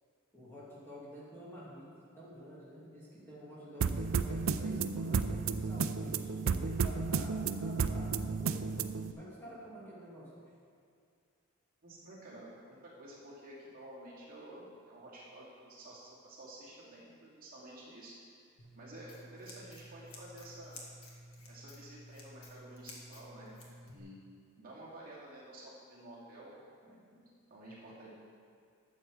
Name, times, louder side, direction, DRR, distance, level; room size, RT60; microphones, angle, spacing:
voice 1, 0.3-8.7 9.1-10.5, equal, 10° left, -8 dB, 2.4 m, -50 dB
sound 1, 3.8-9.1, right 5 dB, 65° right, 0.5 m, -33 dB
voice 2, 11.8-18.1 18.4-20.8 21.5-24.2 24.6-26.6 26.8-27.2 27.5-28.1, right 1 dB, 40° right, -6 dB, 2.5 m, -51 dB
Scissors, 18.6-24.0, left 1 dB, 80° left, 1.8 m, -52 dB
12.0 x 7.7 x 4.9 m, 2.3 s
head